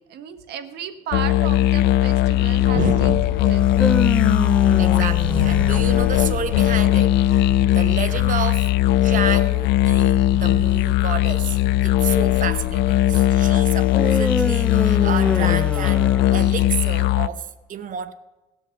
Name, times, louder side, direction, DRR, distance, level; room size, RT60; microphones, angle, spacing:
voice 1, 0.1-3.1 3.4-4.0 6.4-6.5, right 9 dB, 75° right, 1.3 m, -34 dB
sound 1, 1.1-17.3, left 14 dB, 85° left, 0.5 m, -18 dB
sound 2, 2.1-16.0, left 6 dB, 50° left, 2.9 m, -38 dB
voice 2, 2.7-3.5 4.8-8.7 9.0-18.1, right 8 dB, 50° right, 0.9 m, -30 dB
sound 3, 3.5-6.8 13.9-16.9, left 1 dB, 5° left, 0.4 m, -28 dB
18.0 x 6.4 x 6.4 m
cardioid pair, 110°, 17 cm